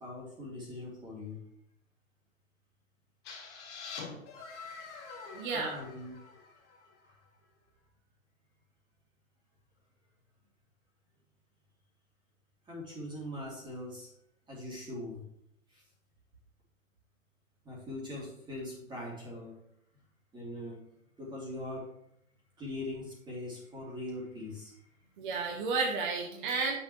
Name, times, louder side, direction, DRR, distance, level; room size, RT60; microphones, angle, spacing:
voice 1, 0.0-1.4 5.5-6.2 7.0-7.2 12.7-14.1 14.5-15.3 15.7-15.8 17.6-19.6 20.3-20.8 21.2-22.0 22.6-24.8, left 1 dB, 10° right, -4 dB, 2.6 m, -41 dB
sound 1, 3.2-7.0, left 5 dB, 25° left, 2.2 m, -46 dB
voice 2, 5.3-5.7 25.2-26.7, right 4 dB, 35° right, 0 dB, 1.6 m, -32 dB
10.0 x 6.9 x 3.2 m, 0.71 s
figure-of-eight pair, 125°, 41 cm